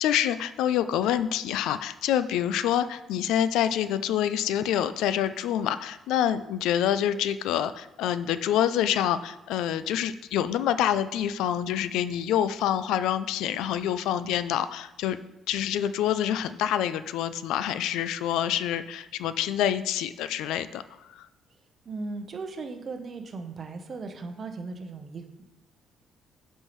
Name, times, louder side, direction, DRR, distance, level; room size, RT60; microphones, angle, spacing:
voice 1, 0.0-15.2 15.5-20.8 21.2-21.3, left 10 dB, 90° left, 13 dB, 0.3 m, -26 dB
voice 2, 21.8-25.4, right 3 dB, 40° right, 6 dB, 0.8 m, -37 dB
8.0 x 5.5 x 3.1 m, 0.97 s
cardioid pair, 110°, 0 cm